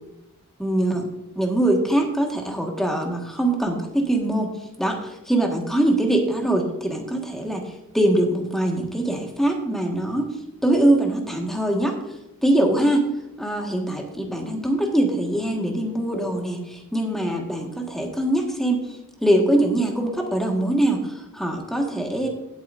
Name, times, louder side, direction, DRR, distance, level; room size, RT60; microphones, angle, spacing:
voice 1, 0.6-1.1 1.3-10.3 10.6-11.9 12.4-13.1 13.4-22.3, right 1 dB, ahead, 1 dB, 1.4 m, -23 dB
16.0 x 8.3 x 2.5 m, 0.92 s
head